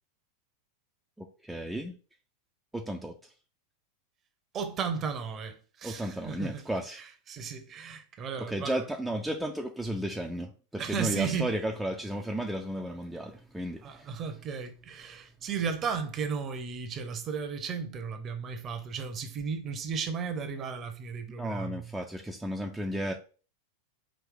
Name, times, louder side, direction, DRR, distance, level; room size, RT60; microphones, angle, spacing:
voice 1, 1.2-1.9 2.7-3.2 5.8-7.0 8.4-14.1 21.4-23.1, right 1 dB, 5° right, 0.5 m, -34 dB
voice 2, 4.5-6.6 6.9-8.8 10.8-11.6 13.8-21.9, right 6 dB, 30° right, 0.8 m, -35 dB
5.0 x 2.7 x 3.7 m
figure-of-eight pair, 90°, 0 cm